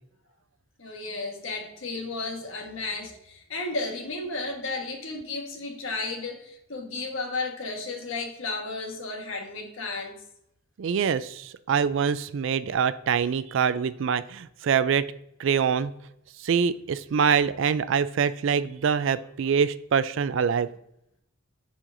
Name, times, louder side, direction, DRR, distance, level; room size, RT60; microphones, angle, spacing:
voice 1, 0.8-10.2, left 3 dB, 70° left, 3 dB, 1.3 m, -33 dB
voice 2, 10.8-15.1 15.4-15.9 16.4-20.7, right 6 dB, 65° right, 15 dB, 0.3 m, -24 dB
7.2 x 5.7 x 2.6 m, 0.76 s
head